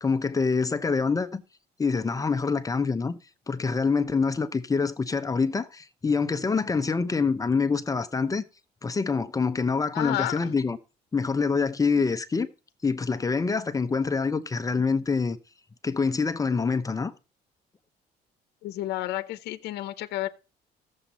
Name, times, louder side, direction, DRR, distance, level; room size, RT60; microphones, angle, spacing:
voice 1, 0.0-1.4 1.8-3.2 3.5-8.4 8.8-10.8 11.1-12.5 12.8-15.4 15.8-17.1, left 4 dB, 20° left, 0.7 m, -26 dB
voice 2, 9.9-10.5 18.6-20.3, left 15 dB, 80° left, 0.8 m, -31 dB
14.5 x 7.2 x 4.2 m
cardioid pair, 110°, 17 cm